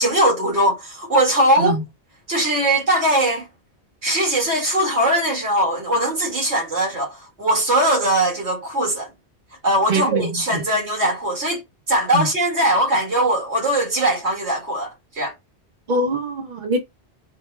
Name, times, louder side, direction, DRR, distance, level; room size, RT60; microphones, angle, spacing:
voice 1, 0.0-1.8 2.3-3.5 4.0-9.1 9.6-11.6 11.9-15.3, right 1 dB, 85° right, 2.3 m, -20 dB
voice 2, 9.9-10.6 12.1-12.3 15.9-16.8, right 1 dB, 50° right, 1.1 m, -23 dB
5.1 x 2.1 x 3.2 m
omnidirectional pair, 1.1 m